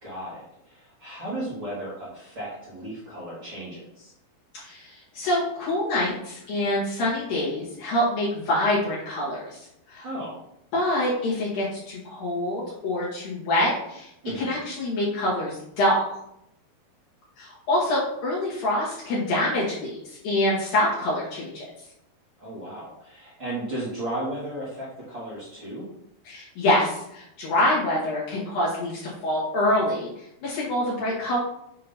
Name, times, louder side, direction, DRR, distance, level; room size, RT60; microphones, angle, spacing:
voice 1, 0.0-4.1 10.0-10.4 14.2-14.6 22.4-25.8, right 1 dB, 50° right, -8 dB, 1.7 m, -35 dB
voice 2, 4.5-9.5 9.9-10.1 10.7-14.1 14.3-16.0 17.4-21.6 26.3-30.1 30.4-31.4, left 1 dB, 65° left, -7 dB, 2.8 m, -25 dB
7.2 x 2.8 x 5.4 m, 0.79 s
omnidirectional pair, 4.7 m